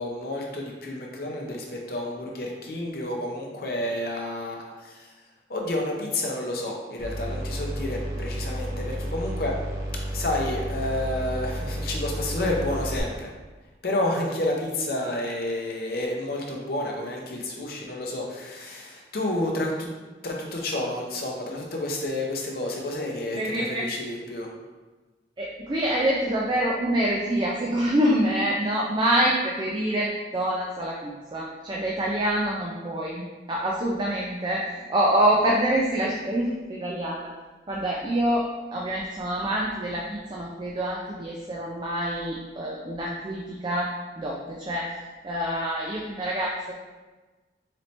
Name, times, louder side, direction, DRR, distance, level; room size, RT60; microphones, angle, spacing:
voice 1, 0.0-5.1 5.5-9.6 10.1-13.3 13.8-19.9 20.2-24.5, left 1 dB, 55° left, 0 dB, 0.6 m, -30 dB
sound 1, 7.0-13.0, equal, 80° right, 0.8 m, -32 dB
voice 2, 23.3-23.9 25.4-33.2 33.5-37.3 37.7-43.9 44.2-45.0 45.2-46.7, right 1 dB, 25° right, -3 dB, 0.3 m, -26 dB
4.2 x 3.2 x 2.8 m, 1.3 s
head